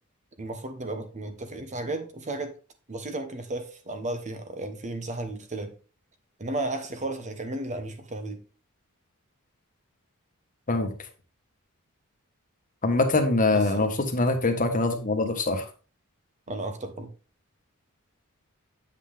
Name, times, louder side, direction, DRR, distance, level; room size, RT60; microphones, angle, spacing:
voice 1, 0.4-2.5 2.9-5.7 6.4-8.4 13.5-13.9 16.5-17.1, right 2 dB, 35° right, 1.0 m, -34 dB
voice 2, 12.8-15.6, left 2 dB, 35° left, 1.3 m, -23 dB
8.2 x 5.7 x 3.4 m
head